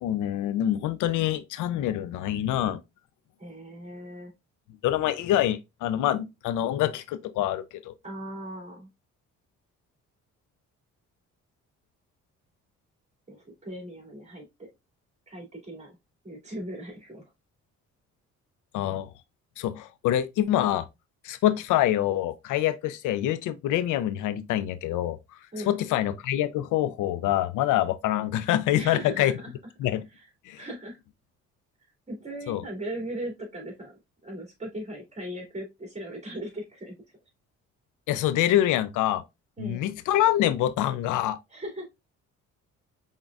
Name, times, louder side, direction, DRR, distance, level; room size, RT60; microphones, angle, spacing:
voice 1, 0.0-2.8 4.8-7.9 18.7-19.1 19.6-20.8 21.2-25.2 25.7-29.4 29.8-30.0 30.5-30.6 32.5-32.6 38.1-39.2 39.6-41.4, left 12 dB, 85° left, 0.5 m, -25 dB
voice 2, 3.4-4.3 8.0-8.9 13.3-14.7 15.3-16.0 16.2-17.3 25.5-25.8 28.8-29.5 30.2-30.3 30.6-31.0 32.1-37.0 39.6-39.8 41.5-41.8, right 1 dB, 25° right, 2.7 m, -38 dB
5.2 x 3.7 x 2.3 m
cardioid pair, 90°, 30 cm